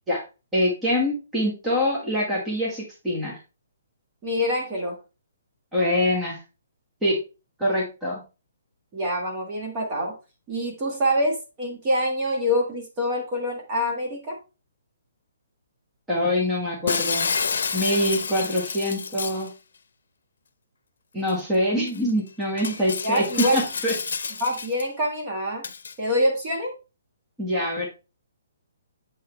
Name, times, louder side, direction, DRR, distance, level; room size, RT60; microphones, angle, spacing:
voice 1, 0.5-3.4 5.7-6.4 7.0-7.2 7.6-8.2 16.1-17.3 17.7-19.5 21.1-23.9 27.4-27.9, left 1 dB, 5° right, -5 dB, 1.4 m, -24 dB
voice 2, 4.2-5.0 8.9-10.1 10.5-14.4 23.0-23.6 24.4-25.6 26.0-26.7, equal, 25° right, -1 dB, 1.6 m, -25 dB
Shatter, 16.9-19.5 21.3-21.4 21.9-22.0 22.6-24.8 25.6-25.9, left 5 dB, 70° left, 0.7 m, -29 dB
7.5 x 4.1 x 3.2 m, 0.30 s
hypercardioid pair, 170°, 0 cm